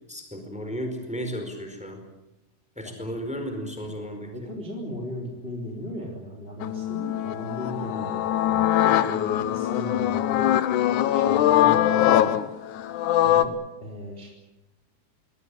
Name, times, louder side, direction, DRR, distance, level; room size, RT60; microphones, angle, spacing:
voice 1, 0.1-2.0 2.8-4.3, equal, ahead, 5 dB, 4.0 m, -34 dB
voice 2, 2.8-3.3 4.3-10.5 11.1-12.4 13.2-14.3, equal, 15° left, 0 dB, 3.5 m, -37 dB
sound 1, 6.6-13.5, left 12 dB, 80° left, 1.7 m, -22 dB
23.5 x 18.0 x 9.9 m, 0.97 s
omnidirectional pair, 4.9 m